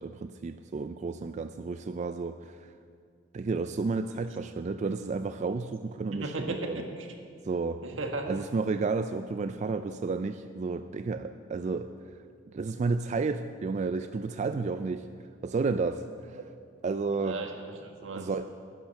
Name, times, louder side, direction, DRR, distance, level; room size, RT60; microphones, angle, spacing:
voice 1, 0.0-2.7 3.3-6.8 7.4-7.8 8.3-12.2 12.5-15.1 15.4-16.4 16.8-17.4 18.1-18.5, right 4 dB, 35° right, 9 dB, 0.3 m, -32 dB
voice 2, 6.1-7.1 7.8-8.3 17.2-18.3, right 2 dB, 80° right, 3 dB, 1.5 m, -36 dB
10.5 x 10.0 x 6.5 m, 2.1 s
head